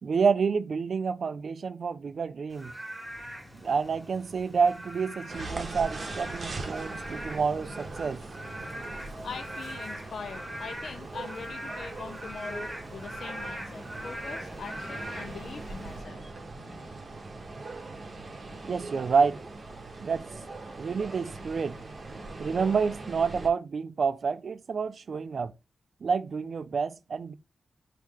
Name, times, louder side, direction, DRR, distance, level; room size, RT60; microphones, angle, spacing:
voice 1, 0.0-2.7 3.6-8.2 18.6-19.4 20.0-20.2 20.8-21.8 22.4-25.5 26.0-27.3, right 5 dB, 55° right, 0.4 m, -28 dB
Frog / Rain, 2.5-16.0, equal, 10° right, 1.2 m, -42 dB
sound 1, 3.0-16.9, left 1 dB, 45° left, 0.9 m, -53 dB
sound 2, 5.3-23.5, right 3 dB, 40° right, 0.8 m, -41 dB
voice 2, 9.2-16.2, left 5 dB, 65° left, 0.4 m, -42 dB
4.8 x 2.8 x 3.6 m
wide cardioid pair, 180°, 0 cm